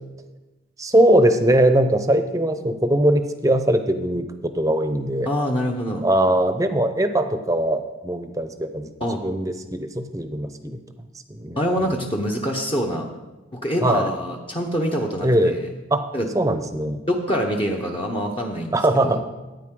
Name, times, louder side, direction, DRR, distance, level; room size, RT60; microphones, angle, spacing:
voice 1, 0.8-5.3 6.0-10.8 11.3-11.9 13.8-14.1 15.2-15.5 15.9-16.0 16.3-17.0 18.7-19.2, right 1 dB, 15° right, 8 dB, 0.7 m, -21 dB
voice 2, 5.3-6.0 9.0-9.2 11.6-13.1 13.5-15.5 16.1-16.3 17.1-19.2, equal, 30° left, 0 dB, 0.8 m, -25 dB
14.5 x 9.0 x 3.8 m, 1.1 s
head